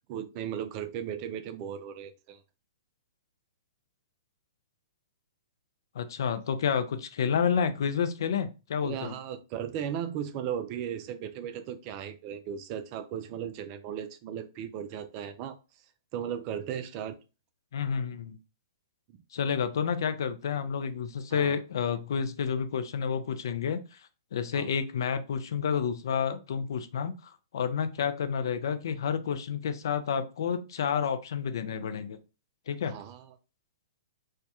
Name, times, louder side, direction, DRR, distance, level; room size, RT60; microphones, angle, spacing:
voice 1, 0.1-2.4 8.8-15.6 16.1-17.2 21.3-21.6 24.5-24.7 32.8-33.3, right 9 dB, 40° right, 9 dB, 0.4 m, -36 dB
voice 2, 5.9-9.1 17.7-18.4 19.3-24.0 24.3-32.2 32.7-32.9, left 7 dB, 65° left, 10 dB, 0.4 m, -30 dB
2.2 x 2.1 x 2.8 m, 0.30 s
hypercardioid pair, 120°, 2 cm